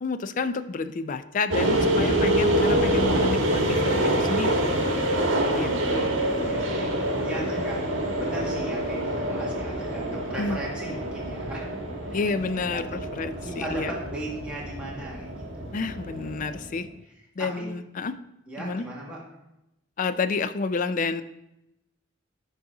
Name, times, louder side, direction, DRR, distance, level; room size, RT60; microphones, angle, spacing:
voice 1, 0.0-4.8 5.5-6.1 7.6-7.7 10.4-10.6 12.1-14.0 15.7-16.9 17.4-18.2 18.6-18.9 20.0-21.2, left 4 dB, 40° left, 12 dB, 0.4 m, -30 dB
sound 1, 1.5-16.7, right 1 dB, 70° right, 1.3 m, -26 dB
voice 2, 5.4-7.8 8.1-11.8 12.0-12.2 12.6-13.1 13.4-15.8 16.7-16.9 17.4-17.7 18.5-19.2, right 1 dB, 5° right, -6 dB, 1.7 m, -38 dB
10.5 x 4.1 x 3.7 m, 0.87 s
head